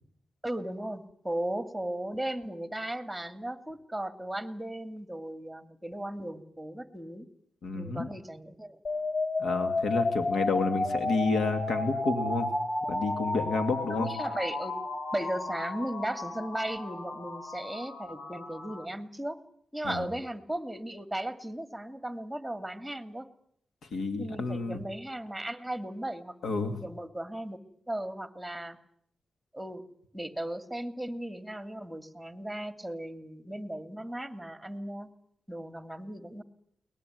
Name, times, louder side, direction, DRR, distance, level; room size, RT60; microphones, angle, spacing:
voice 1, 0.4-7.3 7.7-8.8 13.9-19.4 19.7-23.3 24.2-27.6 27.9-28.8 29.5-29.8 30.1-35.1 35.5-36.4, right 1 dB, ahead, 9 dB, 2.5 m, -36 dB
voice 2, 7.6-8.1 9.4-12.5 12.9-14.1 19.8-20.0 23.9-24.8 26.4-26.8, left 3 dB, 80° left, 7 dB, 2.6 m, -30 dB
sound 1, 8.8-18.8, left 2 dB, 60° left, 3.8 m, -33 dB
22.5 x 20.0 x 9.5 m, 0.69 s
cardioid pair, 75°, 0 cm